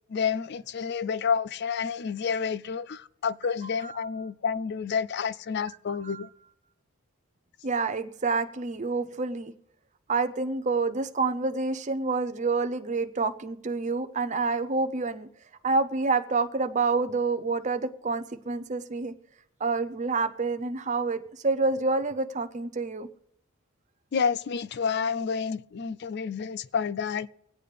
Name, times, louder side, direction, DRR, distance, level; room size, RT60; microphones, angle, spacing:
voice 1, 0.1-6.3 24.1-27.3, left 6 dB, 50° left, 0.4 m, -29 dB
voice 2, 5.9-6.2 7.6-9.5 10.1-15.3 15.6-19.1 19.6-23.1, right 4 dB, 35° right, 0.7 m, -28 dB
24.5 x 8.5 x 3.3 m
head